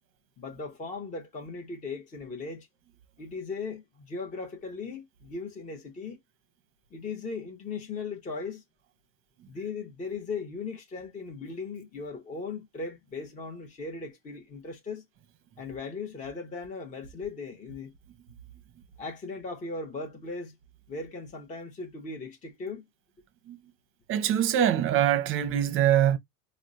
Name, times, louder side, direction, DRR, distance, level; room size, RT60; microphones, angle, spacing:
voice 1, 0.4-2.7 3.2-6.2 6.9-8.6 9.5-15.0 15.6-17.9 19.0-20.6 20.9-22.8, left 4 dB, 20° left, 0.7 m, -38 dB
voice 2, 24.1-26.2, right 10 dB, 35° right, 0.6 m, -23 dB
4.3 x 2.0 x 2.5 m
supercardioid pair, 140°, 38 cm